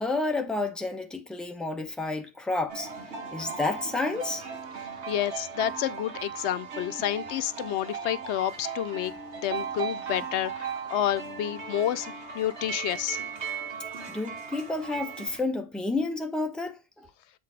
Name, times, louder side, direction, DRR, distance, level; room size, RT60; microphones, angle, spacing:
voice 1, 0.0-2.9 3.3-4.5 14.1-17.1, left 2 dB, ahead, 0.9 m, -30 dB
sound 1, 2.7-15.4, right 6 dB, 80° right, 1.6 m, -37 dB
voice 2, 5.1-9.1 9.4-13.2, left 11 dB, 85° left, 0.9 m, -29 dB
7.7 x 4.0 x 4.8 m
omnidirectional pair, 1.1 m